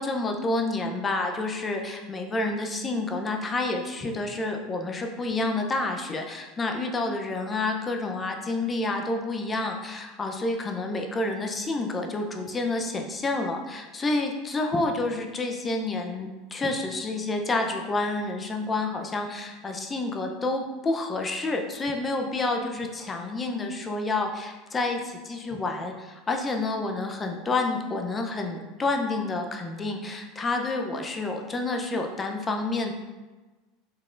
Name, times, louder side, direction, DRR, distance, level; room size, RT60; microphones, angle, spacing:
voice 1, 0.0-32.9, left 2 dB, 25° left, 3 dB, 0.6 m, -29 dB
5.5 x 3.4 x 2.5 m, 1.2 s
hypercardioid pair, 95°, 0 cm